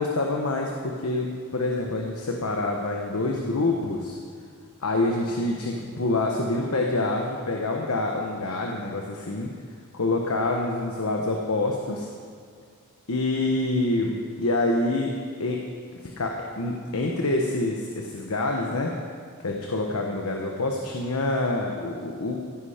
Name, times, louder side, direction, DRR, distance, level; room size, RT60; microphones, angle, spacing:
voice 1, 0.0-4.2 4.8-9.5 9.9-12.1 13.1-15.1 15.4-15.6 16.2-18.9 19.4-22.4, left 2 dB, 85° left, 1 dB, 1.2 m, -26 dB
16.0 x 10.0 x 5.1 m, 2.1 s
head